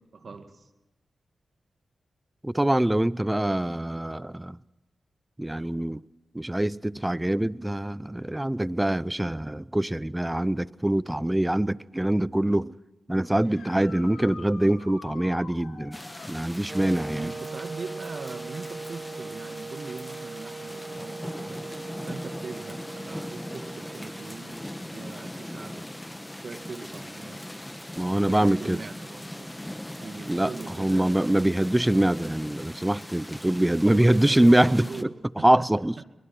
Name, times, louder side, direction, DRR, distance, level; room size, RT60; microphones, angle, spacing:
voice 1, 0.1-0.7 17.1-21.6 22.1-25.9 26.4-27.4 28.2-29.5 30.0-31.7 33.8-35.7, right 4 dB, 60° right, 2.2 m, -40 dB
voice 2, 2.4-4.6 5.4-6.0 6.3-12.7 13.1-16.0 16.3-17.3 28.0-28.8 30.3-30.5 30.8-34.9 35.4-35.9, right 1 dB, 15° right, 0.7 m, -24 dB
sound 1, 13.4-16.4 19.7-19.8 21.8-21.9 28.1-28.2, left 5 dB, 75° left, 5.6 m, -46 dB
sound 2, 15.9-35.0, left 1 dB, 10° left, 1.2 m, -40 dB
Wind instrument woodwind instrument, 16.7-24.6, right 3 dB, 40° right, 0.8 m, -40 dB
24.0 x 21.0 x 6.1 m
supercardioid pair, 40°, 0 cm